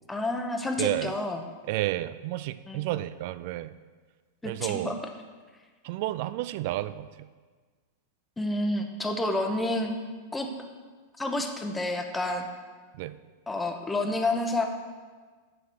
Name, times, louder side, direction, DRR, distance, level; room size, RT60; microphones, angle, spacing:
voice 1, 0.1-1.4 2.7-3.0 4.4-5.0 8.4-9.9 10.3-10.5 11.2-12.5 13.5-14.6, left 2 dB, 10° left, 4 dB, 1.1 m, -29 dB
voice 2, 0.8-1.1 1.7-3.7 4.4-4.9 5.8-7.1 12.9-13.1, right 16 dB, 60° right, 14 dB, 0.4 m, -31 dB
10.0 x 3.9 x 6.4 m, 1.5 s
hypercardioid pair, 105°, 0 cm